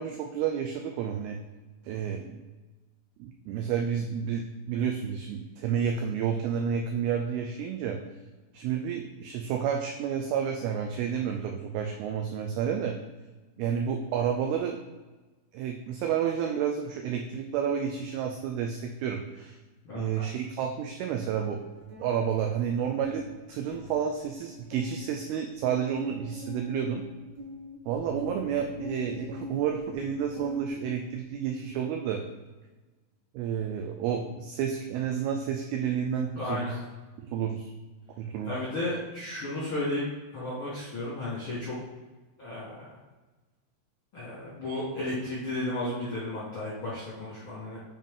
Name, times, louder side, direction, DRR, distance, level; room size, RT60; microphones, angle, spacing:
voice 1, 0.0-1.4 1.8-2.4 3.2-8.0 8.5-13.0 13.6-14.8 15.5-19.6 19.9-21.6 22.0-27.0 27.9-32.2 33.3-36.7 37.2-37.7 38.2-38.6, right 8 dB, 90° right, 3 dB, 2.1 m, -30 dB
voice 2, 19.8-20.2 36.3-36.8 38.4-40.0 40.3-41.8 42.4-43.0 44.1-47.8, left 1 dB, 65° left, -9 dB, 1.3 m, -33 dB
sound 1, 21.6-24.0 24.3-24.4 24.7-30.7 31.1-31.5, left 2 dB, 70° right, 1.9 m, -44 dB
7.0 x 3.7 x 3.6 m, 1.2 s
omnidirectional pair, 4.9 m